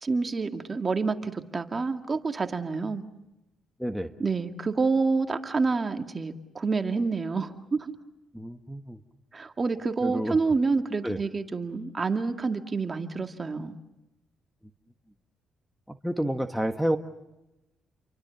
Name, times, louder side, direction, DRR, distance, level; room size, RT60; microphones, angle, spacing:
voice 1, 0.0-3.0 4.2-7.9 9.3-13.7, right 4 dB, 30° right, 6 dB, 2.1 m, -28 dB
voice 2, 8.3-9.0 10.0-10.4 11.0-11.2 15.9-17.0, equal, ahead, 5 dB, 1.5 m, -29 dB
30.0 x 24.0 x 7.0 m, 0.96 s
cardioid pair, 90°, 0 cm